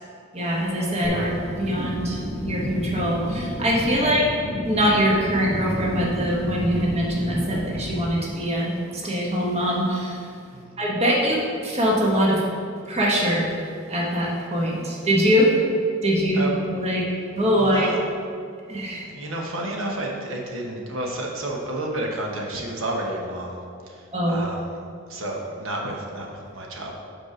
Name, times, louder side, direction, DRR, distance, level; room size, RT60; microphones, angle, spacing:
voice 1, 0.3-4.3 4.6-10.3 10.8-12.4 12.9-13.5 13.9-15.5 16.0-16.4 16.7-17.0 17.3-17.9 18.7-19.0 24.1-24.4, equal, 30° right, -3 dB, 1.2 m, -23 dB
sound 1, 1.0-8.0, equal, 5° right, 1.7 m, -31 dB
voice 2, 17.6-18.0 19.1-24.7 25.1-26.9, right 1 dB, 70° right, -1 dB, 1.1 m, -31 dB
5.2 x 4.7 x 6.0 m, 2.3 s
head